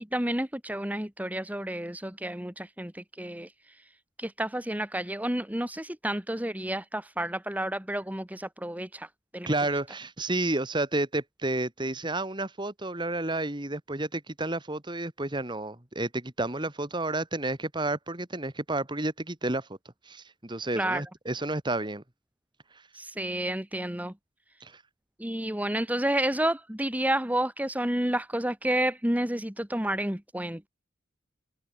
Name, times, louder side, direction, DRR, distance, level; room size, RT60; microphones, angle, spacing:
voice 1, 0.0-9.5 20.7-21.0 22.9-24.1 25.2-30.7, right 1 dB, 10° right, 1.8 m, -30 dB
voice 2, 9.5-19.7 20.1-22.0 24.6-24.8, right 2 dB, 25° right, 2.0 m, -31 dB
head